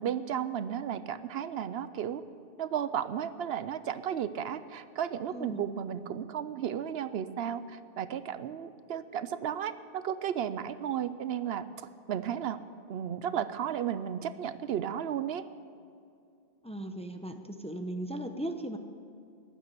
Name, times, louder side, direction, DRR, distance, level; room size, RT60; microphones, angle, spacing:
voice 1, 0.0-2.2 2.6-11.7 12.1-12.6 12.9-15.4, right 9 dB, 75° right, 13 dB, 0.8 m, -34 dB
voice 2, 5.3-5.6 16.6-18.8, right 1 dB, 5° left, 6 dB, 0.7 m, -37 dB
15.0 x 11.0 x 6.8 m, 2.4 s
omnidirectional pair, 1.1 m